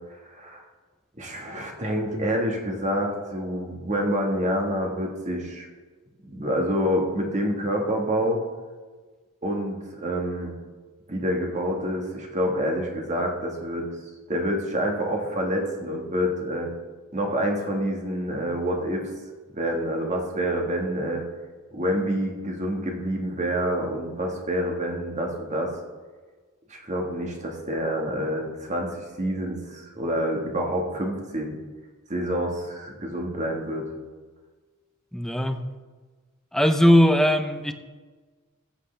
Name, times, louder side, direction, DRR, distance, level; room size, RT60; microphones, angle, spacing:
voice 1, 0.3-0.6 1.2-5.7 6.2-8.4 9.4-10.5 11.1-13.9 14.3-16.7 17.1-19.1 19.5-21.2 21.7-25.7 26.7-31.6 32.1-33.9, equal, 35° right, 1 dB, 1.6 m, -27 dB
voice 2, 35.1-35.7 36.5-37.7, equal, ahead, 8 dB, 0.5 m, -19 dB
14.5 x 8.1 x 3.3 m, 1.4 s
head